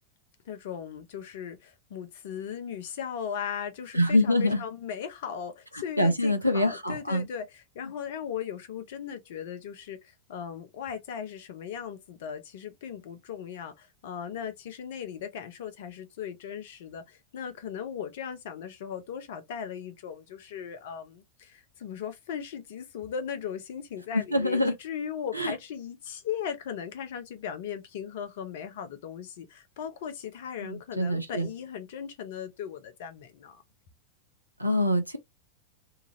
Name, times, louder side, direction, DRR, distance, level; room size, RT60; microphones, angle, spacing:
voice 1, 0.4-33.6, left 8 dB, 55° left, 0.7 m, -38 dB
voice 2, 3.9-4.6 6.0-7.2 24.1-24.7 25.3-25.5 30.6-31.5 34.6-35.2, left 1 dB, 85° right, 0.6 m, -25 dB
2.8 x 2.5 x 2.8 m
figure-of-eight pair, 90°, 0 cm